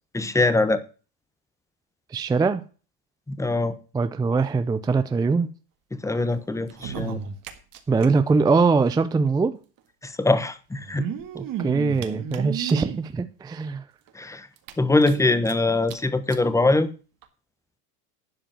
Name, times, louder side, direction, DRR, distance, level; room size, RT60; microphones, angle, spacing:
voice 1, 0.1-0.8 3.3-3.7 5.9-7.2 10.0-11.1 14.1-14.5 14.8-16.9, left 2 dB, 5° left, 1.0 m, -22 dB
voice 2, 2.1-2.6 3.9-5.5 7.9-9.6 11.3-13.8, right 4 dB, 10° right, 0.5 m, -22 dB
sound 1, 6.6-8.1 8.3-8.4 8.6-8.7 9.8-9.9 10.7-13.0 13.6-13.7 14.1-14.2 14.6-15.5 15.9-16.0 16.3-16.4 17.2-17.3, right 8 dB, 45° right, 1.9 m, -33 dB
11.5 x 5.1 x 7.6 m
supercardioid pair, 115°, 47 cm